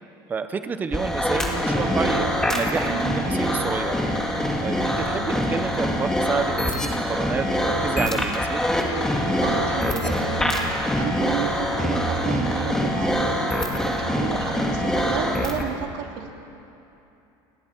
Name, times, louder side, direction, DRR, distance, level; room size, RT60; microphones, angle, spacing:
voice 1, 0.3-4.0 4.6-8.6, right 5 dB, 15° right, 10 dB, 0.7 m, -29 dB
sound 1, 0.9-15.7, equal, 5° left, 1.8 m, -24 dB
voice 2, 2.8-3.2 9.4-10.7 11.0-16.3, right 8 dB, 60° right, 2 dB, 2.4 m, -32 dB
29.5 x 19.5 x 4.5 m, 2.8 s
cardioid pair, 180°, 11 cm